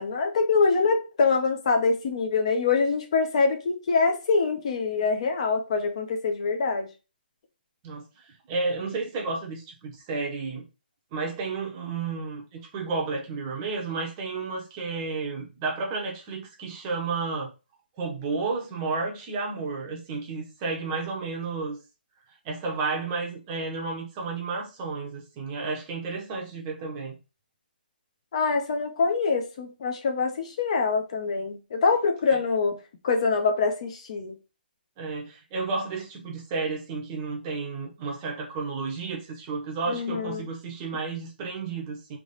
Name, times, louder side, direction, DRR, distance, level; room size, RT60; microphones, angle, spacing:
voice 1, 0.0-6.9 28.3-32.8 33.0-34.4 39.9-40.5, left 4 dB, 35° left, 0.8 m, -24 dB
voice 2, 7.8-10.7 11.1-17.5 18.0-21.8 22.4-27.2 32.3-32.4 35.0-42.2, right 4 dB, 20° right, 0.8 m, -32 dB
3.5 x 3.0 x 4.0 m
hypercardioid pair, 170°, 6 cm